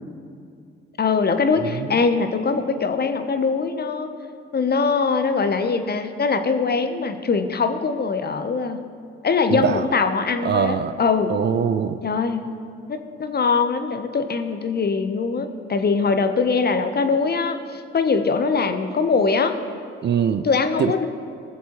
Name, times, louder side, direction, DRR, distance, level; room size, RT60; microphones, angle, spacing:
voice 1, 1.0-4.1 4.5-8.8 9.2-11.3 12.0-12.4 12.9-19.6 20.4-21.1, left 4 dB, 35° left, 7 dB, 0.9 m, -22 dB
voice 2, 9.5-9.8 10.4-10.9 11.3-12.0 20.0-20.4 20.8-20.9, right 8 dB, 35° right, 11 dB, 0.5 m, -22 dB
18.5 x 7.2 x 3.1 m, 2.4 s
hypercardioid pair, 45°, 29 cm